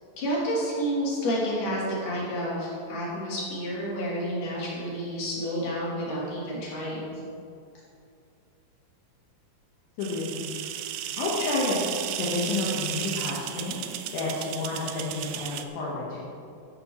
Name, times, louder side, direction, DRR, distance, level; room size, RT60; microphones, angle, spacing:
voice 1, 0.2-7.2, equal, 65° left, -7 dB, 4.4 m, -30 dB
voice 2, 10.0-10.5 11.2-11.9 12.2-16.2, left 3 dB, 85° left, -6 dB, 3.3 m, -30 dB
sound 1, 10.0-15.6, right 11 dB, 80° right, 1.9 m, -34 dB
13.5 x 11.0 x 3.2 m, 2.5 s
omnidirectional pair, 4.1 m